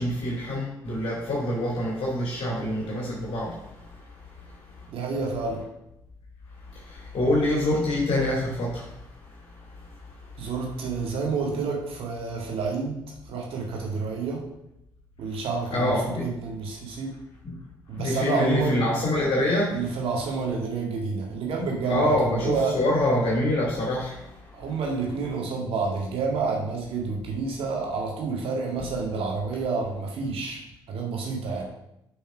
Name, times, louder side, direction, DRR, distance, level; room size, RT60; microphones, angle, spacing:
voice 1, 0.0-3.6 6.7-8.9 15.7-16.3 17.4-17.6 18.0-19.8 21.9-24.4, left 1 dB, 55° left, -3 dB, 2.6 m, -25 dB
voice 2, 4.9-5.6 10.4-13.0 13.3-14.4 15.2-17.1 17.9-18.8 19.7-22.8 24.5-30.6 30.9-31.6, right 4 dB, 60° right, -1 dB, 1.9 m, -29 dB
7.2 x 5.6 x 4.9 m, 0.84 s
figure-of-eight pair, 40°, 11 cm